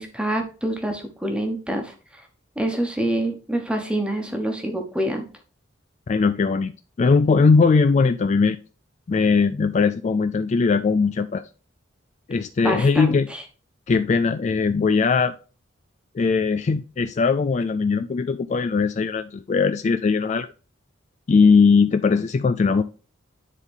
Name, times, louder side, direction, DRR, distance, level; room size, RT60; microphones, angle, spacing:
voice 1, 0.0-1.9 2.6-5.2 12.6-13.4, right 1 dB, 5° right, 1.2 m, -26 dB
voice 2, 6.1-6.7 7.0-8.6 9.1-11.4 12.3-13.3 13.9-15.3 16.1-20.5 21.3-22.8, left 4 dB, 35° left, 0.3 m, -19 dB
9.8 x 3.9 x 3.7 m
head